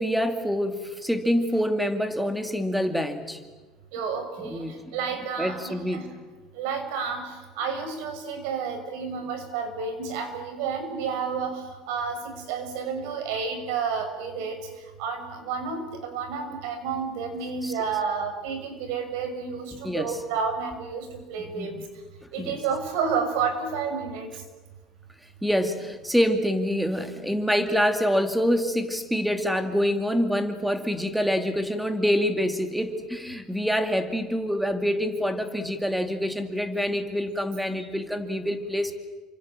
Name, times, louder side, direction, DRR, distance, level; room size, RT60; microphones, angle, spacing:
voice 1, 0.0-3.4 4.4-4.9 5.4-6.1 17.6-17.7 19.8-20.2 21.6-21.8 22.4-22.6 25.4-38.9, equal, ahead, 7 dB, 2.4 m, -26 dB
voice 2, 3.9-6.1 6.5-14.6 15.0-21.8 22.3-24.3, right 5 dB, 85° right, 7 dB, 6.3 m, -30 dB
29.0 x 26.0 x 7.6 m, 1.3 s
cardioid pair, 140°, 0 cm